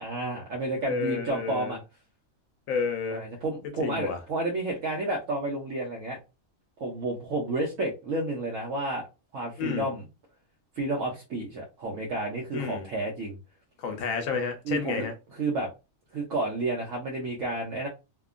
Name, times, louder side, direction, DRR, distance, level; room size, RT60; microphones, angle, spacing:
voice 1, 0.0-1.8 3.1-6.2 6.8-9.0 9.3-10.0 10.8-13.4 14.7-15.1 15.3-15.7 16.1-17.9, right 2 dB, 75° right, 1.0 m, -31 dB
voice 2, 0.9-1.8 2.7-3.2 3.8-4.2 9.6-9.9 12.5-12.9 13.8-15.1, left 5 dB, 80° left, 1.0 m, -30 dB
2.8 x 2.2 x 2.4 m
omnidirectional pair, 1.4 m